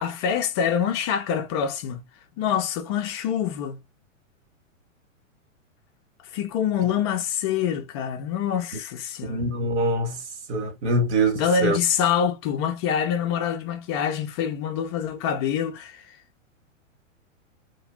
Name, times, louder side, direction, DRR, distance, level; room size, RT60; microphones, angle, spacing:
voice 1, 0.0-2.0 2.4-3.8 6.3-9.5 11.3-16.0, left 8 dB, 20° left, 0.3 m, -25 dB
voice 2, 9.2-10.2 10.5-11.8, right 2 dB, 55° right, 1.2 m, -24 dB
2.4 x 2.2 x 3.1 m
hypercardioid pair, 110°, 40 cm